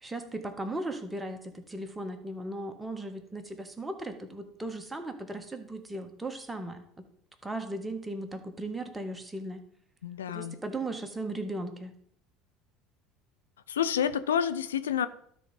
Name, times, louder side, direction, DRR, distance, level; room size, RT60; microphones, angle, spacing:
voice 1, 0.0-6.8 7.4-9.6 10.3-11.9, right 2 dB, 10° right, 5 dB, 1.5 m, -37 dB
voice 2, 10.0-10.6 13.7-15.1, left 9 dB, 90° left, 12 dB, 0.5 m, -29 dB
12.5 x 4.2 x 5.3 m, 0.66 s
hypercardioid pair, 75°, 0 cm